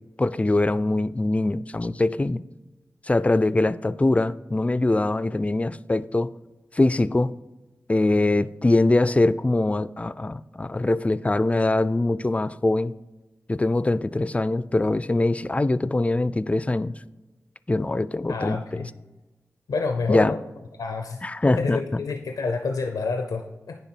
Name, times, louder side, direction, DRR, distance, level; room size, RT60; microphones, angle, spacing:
voice 1, 0.2-2.4 3.1-6.3 6.7-7.3 7.9-12.9 13.5-16.9 17.7-18.6 20.1-20.3 21.2-22.0, left 2 dB, 20° left, 0.3 m, -23 dB
voice 2, 18.3-18.9 19.7-20.4 20.8-21.2 21.6-23.8, left 4 dB, 90° left, 0.5 m, -28 dB
9.9 x 3.4 x 4.5 m
cardioid pair, 40°, 6 cm